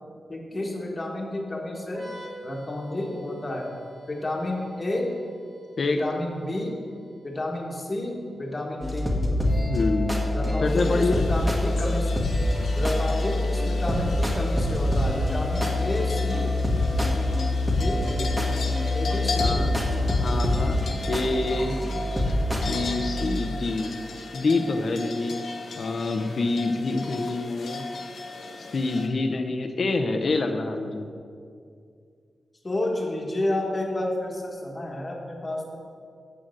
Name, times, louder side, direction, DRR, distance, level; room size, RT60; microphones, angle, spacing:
voice 1, 0.3-2.1 2.4-3.7 4.1-5.1 5.9-6.7 7.2-9.2 10.3-12.1 12.7-16.5 17.8-18.4 18.9-19.7 32.6-35.8, left 1 dB, 25° left, -1 dB, 1.4 m, -30 dB
sound 1, 1.9-9.4, right 2 dB, 80° right, 2.4 m, -50 dB
sound 2, 8.8-23.1, left 1 dB, 5° right, 1.5 m, -25 dB
voice 2, 9.7-11.3 19.4-19.7 20.2-20.8 21.0-21.8 22.1-22.2 22.6-23.9 24.3-25.4 25.8-27.8 28.7-31.1, left 3 dB, 50° left, 7 dB, 0.8 m, -26 dB
sound 3, 10.6-29.1, left 4 dB, 75° left, 1.1 m, -37 dB
7.6 x 6.5 x 7.7 m, 2.3 s
wide cardioid pair, 140°, 0 cm